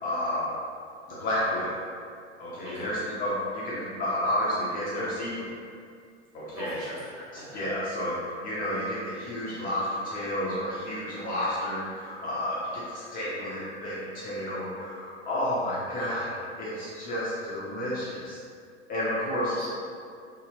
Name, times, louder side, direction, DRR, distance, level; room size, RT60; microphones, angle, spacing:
voice 1, 0.0-0.5 1.1-1.8 2.4-5.5 6.3-6.8 7.5-18.4 18.9-19.6, left 1 dB, 25° left, -8 dB, 0.5 m, -31 dB
voice 2, 2.6-2.9 6.5-7.6 16.0-16.1 19.4-19.7, right 1 dB, 45° right, -9 dB, 1.3 m, -41 dB
2.7 x 2.1 x 2.9 m, 2.3 s
figure-of-eight pair, 85°, 36 cm